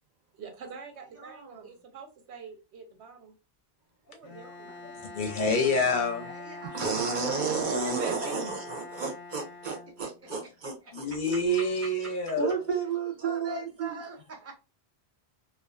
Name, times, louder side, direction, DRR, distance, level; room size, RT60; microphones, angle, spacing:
voice 1, 0.3-3.4 4.1-4.8 7.7-8.6, right 4 dB, 85° right, 1.0 m, -44 dB
voice 2, 1.1-1.8 4.2-5.3 6.2-7.3 10.2-10.5 10.8-11.2 13.2-14.5, right 2 dB, 20° right, 0.5 m, -46 dB
Bowed string instrument, 4.2-10.4, left 3 dB, 90° left, 0.9 m, -44 dB
voice 3, 5.1-6.3 10.9-12.6, left 2 dB, 60° left, 0.6 m, -27 dB
voice 4, 6.7-11.1 12.4-14.0, right 5 dB, 55° right, 0.7 m, -31 dB
2.4 x 2.3 x 2.2 m
omnidirectional pair, 1.1 m